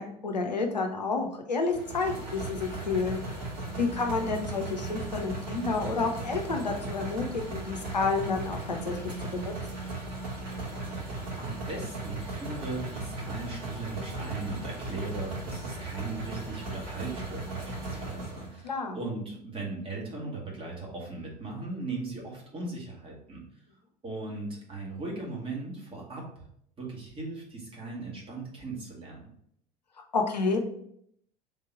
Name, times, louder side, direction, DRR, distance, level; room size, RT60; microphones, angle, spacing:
voice 1, 0.0-3.4 3.8-9.0 9.3-9.5 18.6-19.0 30.1-30.6, left 4 dB, 85° left, 3 dB, 0.6 m, -30 dB
sound 1, 1.7-18.6, right 2 dB, 45° right, 1.8 m, -37 dB
voice 2, 10.9-23.4 24.0-26.4 26.8-29.3, right 3 dB, 25° right, -2 dB, 1.6 m, -38 dB
3.8 x 2.9 x 4.4 m, 0.70 s
figure-of-eight pair, 70°, 21 cm